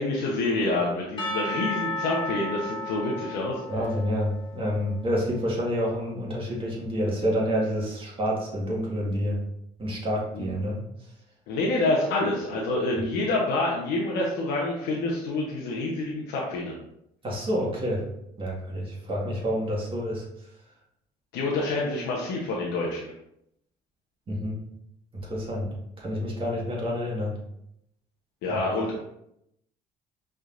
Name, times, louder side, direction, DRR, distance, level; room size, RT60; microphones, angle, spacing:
voice 1, 0.0-3.6 10.3-10.4 11.5-16.7 21.3-23.1 28.4-29.0, left 2 dB, 90° left, -3 dB, 0.9 m, -27 dB
Percussion / Church bell, 1.2-5.5, left 1 dB, 30° left, 1.3 m, -34 dB
voice 2, 3.7-9.4 9.8-10.8 13.0-13.1 17.2-18.0 18.4-20.2 24.3-24.6 25.1-27.4 28.5-28.6, equal, 30° right, -4 dB, 1.7 m, -28 dB
5.2 x 3.8 x 2.5 m, 0.78 s
cardioid pair, 110°, 17 cm